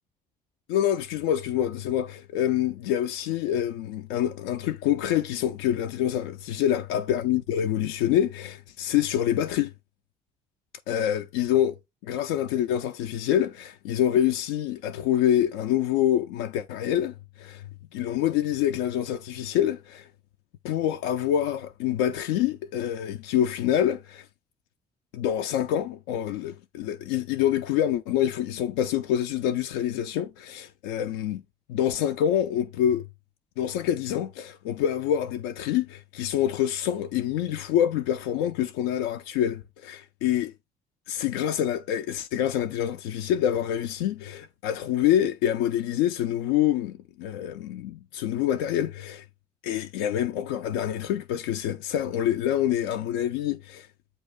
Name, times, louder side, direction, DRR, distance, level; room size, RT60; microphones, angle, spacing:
voice 1, 0.7-9.7 10.9-11.8 12.0-20.1 20.6-24.3 25.1-31.4 31.7-33.1 33.6-40.5 41.1-49.2 49.6-53.9, left 11 dB, 60° left, 0.4 m, -26 dB
8.1 x 2.7 x 5.0 m
figure-of-eight pair, 50°, 21 cm